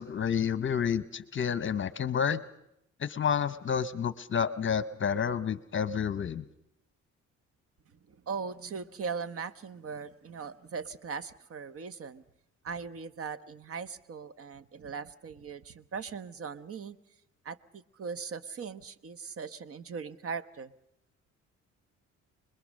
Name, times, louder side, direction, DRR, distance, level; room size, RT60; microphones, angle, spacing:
voice 1, 0.0-2.4 3.0-6.4, left 7 dB, 40° left, 15 dB, 0.9 m, -30 dB
voice 2, 8.1-12.2 12.6-17.0 17.4-20.7, right 5 dB, 50° right, 15 dB, 1.1 m, -39 dB
25.5 x 21.0 x 6.5 m, 0.80 s
cardioid pair, 90°, 30 cm